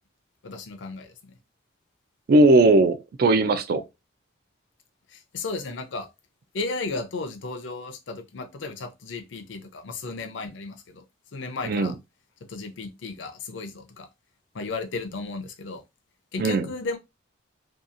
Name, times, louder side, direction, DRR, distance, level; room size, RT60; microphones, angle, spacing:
voice 1, 0.4-1.1 5.1-6.1 6.5-11.0 11.3-11.9 12.5-14.1 14.5-15.8 16.3-17.0, left 3 dB, 70° left, 0.5 m, -34 dB
voice 2, 2.3-3.8 11.7-11.9 16.4-16.7, right 2 dB, 50° right, 0.3 m, -18 dB
2.8 x 2.3 x 2.5 m
head